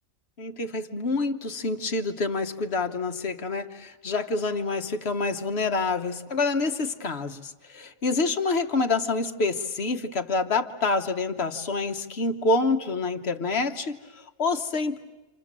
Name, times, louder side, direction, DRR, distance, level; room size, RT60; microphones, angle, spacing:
voice 1, 0.4-15.0, left 3 dB, 55° left, 6 dB, 1.5 m, -27 dB
29.0 x 27.5 x 7.5 m, 1.1 s
omnidirectional pair, 1.3 m